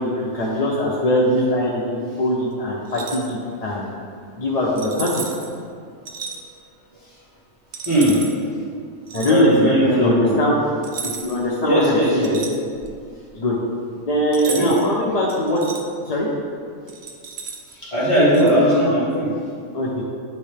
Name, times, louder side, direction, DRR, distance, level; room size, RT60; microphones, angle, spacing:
voice 1, 0.0-3.9 4.4-5.3 9.1-10.6 11.0-12.3 13.3-13.6 14.1-15.6 16.1-16.3 19.7-20.0, equal, 45° left, -5 dB, 0.5 m, -21 dB
sound 1, 2.9-3.3 4.8-5.5 6.1-6.4 7.7-8.3 9.1-9.4 10.8-11.5 11.8-13.0 14.3-14.9 15.3-15.8 16.9-17.7 18.3-18.5, right 5 dB, 60° right, 0.5 m, -33 dB
voice 2, 7.8-8.2 9.3-10.4 11.6-12.4 14.4-14.7 17.7-19.3, equal, 25° left, -10 dB, 1.5 m, -18 dB
9.1 x 3.2 x 3.3 m, 2.2 s
omnidirectional pair, 1.4 m